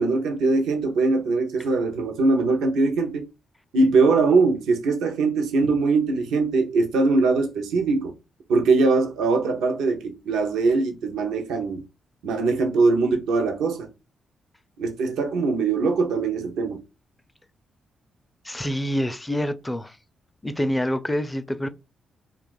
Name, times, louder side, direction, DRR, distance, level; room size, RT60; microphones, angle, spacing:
voice 1, 0.0-3.2 3.7-8.1 8.5-11.8 12.2-13.9 14.8-16.8, right 3 dB, 85° right, 0.5 m, -22 dB
voice 2, 18.4-20.0 20.4-21.7, equal, 15° left, 0.4 m, -26 dB
2.4 x 2.3 x 3.8 m
supercardioid pair, 60°, 0 cm